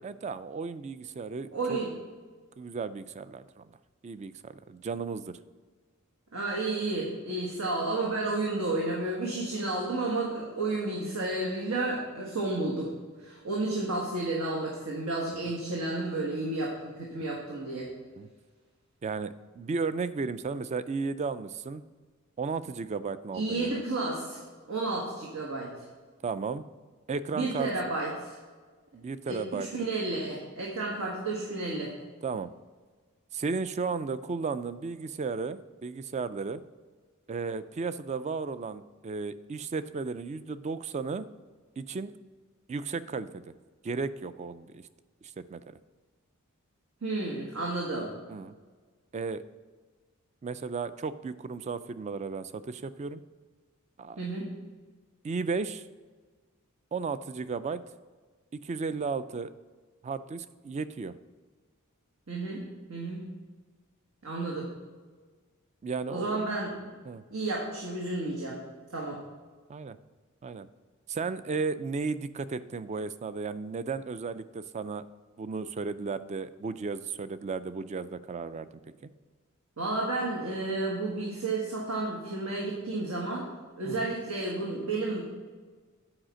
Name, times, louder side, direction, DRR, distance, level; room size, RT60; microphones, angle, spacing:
voice 1, 0.0-1.8 2.6-3.7 4.0-5.3 18.2-18.3 19.0-21.8 22.4-23.8 26.2-26.6 27.1-27.7 28.9-29.9 32.2-32.5 33.3-36.6 37.3-41.3 41.8-42.1 42.7-43.5 43.8-44.8 45.2-45.8 48.3-48.5 49.1-49.4 50.4-53.2 54.0-54.2 55.2-55.8 56.9-57.8 58.6-59.5 60.0-61.1 65.8-66.4 67.1-67.2 69.1-69.2 69.7-70.0 70.4-70.7 71.1-75.0 75.4-78.7 79.0-79.1 83.8-84.1, right 4 dB, 30° right, 14 dB, 0.3 m, -34 dB
voice 2, 1.5-1.9 6.3-12.9 13.2-17.9 23.3-24.4 24.7-25.7 27.3-28.4 29.2-31.9 47.0-48.1 54.2-54.5 62.3-62.6 62.9-63.3 64.2-64.7 66.1-66.7 67.3-68.6 68.9-69.2 79.8-83.5 83.8-85.2, right 2 dB, 85° right, -3 dB, 1.5 m, -31 dB
8.8 x 4.9 x 6.3 m, 1.4 s
head